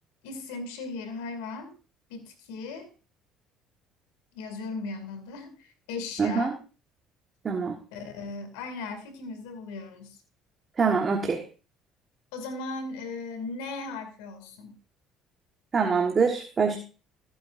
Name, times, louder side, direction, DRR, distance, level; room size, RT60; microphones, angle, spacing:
voice 1, 0.2-1.8 2.1-2.9 4.3-6.6 7.9-10.2 12.3-14.8, left 3 dB, 90° left, 8 dB, 2.4 m, -37 dB
voice 2, 6.2-6.5 7.4-7.8 10.8-11.4 15.7-16.8, right 5 dB, 35° right, 3 dB, 1.4 m, -24 dB
15.0 x 9.3 x 2.6 m, 0.35 s
supercardioid pair, 85°, 0 cm